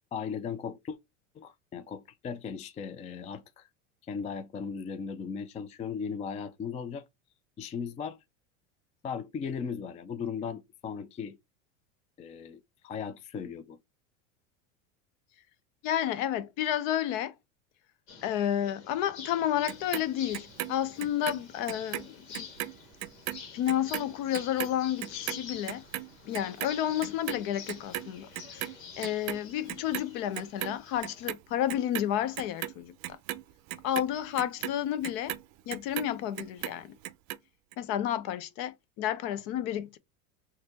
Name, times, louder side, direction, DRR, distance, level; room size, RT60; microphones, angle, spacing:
voice 1, 0.1-1.0 1.4-3.7 4.0-7.0 7.6-8.2 9.0-11.4 12.2-13.8, left 6 dB, 20° left, 0.4 m, -37 dB
voice 2, 15.8-17.3 18.2-22.5 23.5-25.8 26.3-28.3 28.5-28.7 29.0-33.2 33.8-35.4 35.7-36.9 37.8-40.0, left 11 dB, 55° left, 0.8 m, -31 dB
sound 1, 18.1-31.3, left 6 dB, 80° left, 1.6 m, -48 dB
Clock, 19.7-22.1 22.3-28.8 29.0-30.1 30.3-31.4 31.7-36.1 36.4-37.4 37.7-37.8, right 15 dB, 45° right, 0.5 m, -37 dB
4.2 x 2.7 x 2.8 m
hypercardioid pair, 105°, 40 cm